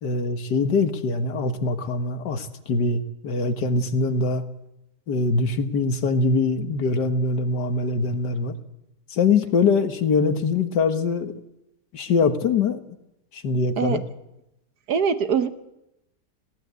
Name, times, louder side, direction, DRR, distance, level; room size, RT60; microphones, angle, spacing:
voice 1, 0.0-4.4 5.1-8.5 9.1-11.3 11.9-12.8 13.3-14.0, left 4 dB, 85° left, 8 dB, 2.0 m, -23 dB
voice 2, 14.9-15.5, right 6 dB, 70° right, 10 dB, 1.6 m, -22 dB
20.5 x 17.5 x 8.2 m, 0.89 s
omnidirectional pair, 1.8 m